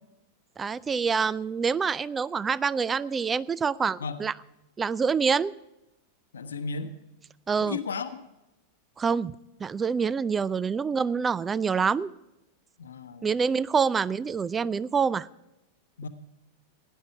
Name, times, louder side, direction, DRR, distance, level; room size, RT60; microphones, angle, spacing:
voice 1, 0.6-4.3 4.8-5.5 7.5-7.8 9.0-9.3 9.6-12.1 13.2-15.3, right 5 dB, 20° right, 21 dB, 0.4 m, -26 dB
voice 2, 6.3-7.0 7.6-8.2 12.8-13.3 16.0-16.1, left 4 dB, 70° left, 9 dB, 0.9 m, -34 dB
16.5 x 10.5 x 4.7 m, 0.95 s
figure-of-eight pair, 90°, 0 cm